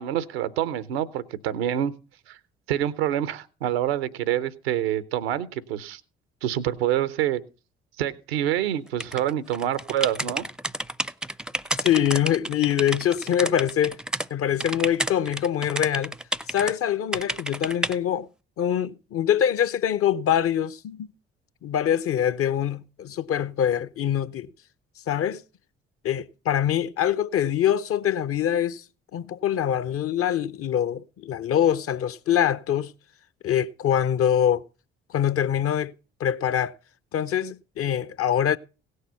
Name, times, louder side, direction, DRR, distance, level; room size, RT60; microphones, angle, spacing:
voice 1, 0.0-1.9 2.3-2.4 2.7-6.0 6.4-7.4 8.0-10.5, right 11 dB, 80° right, 0.7 m, -26 dB
sound 1, 9.0-14.3 14.6-16.7 17.1-18.0, right 1 dB, 5° right, 0.5 m, -30 dB
voice 2, 11.8-14.0 14.3-16.1 16.5-18.3 18.6-21.1 21.6-24.5 25.1-25.4 26.0-28.8 29.1-32.9 33.4-34.6 35.1-35.9 36.2-36.7 37.1-38.6, left 10 dB, 50° left, 0.7 m, -24 dB
17.0 x 6.6 x 5.5 m
hypercardioid pair, 45°, 30 cm